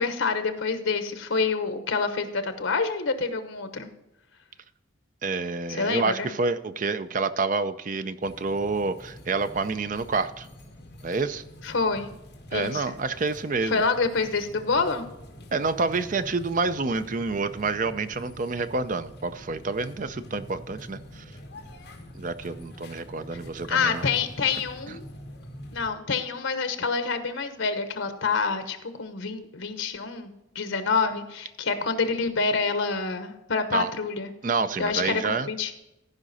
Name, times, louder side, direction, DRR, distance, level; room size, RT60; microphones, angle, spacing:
voice 1, 0.0-3.9 5.7-6.3 11.6-12.1 12.5-12.9 13.6-15.0 23.7-25.0 25.7-34.3 34.8-35.7, left 4 dB, 80° left, 9 dB, 1.0 m, -27 dB
voice 2, 5.2-10.5 11.0-11.4 12.5-13.8 15.5-21.2 22.1-24.1 33.7-33.9 34.4-35.5, right 4 dB, 40° right, 12 dB, 0.5 m, -28 dB
sound 1, 8.2-25.9, equal, 55° left, 1.8 m, -45 dB
15.0 x 5.1 x 4.1 m, 0.92 s
head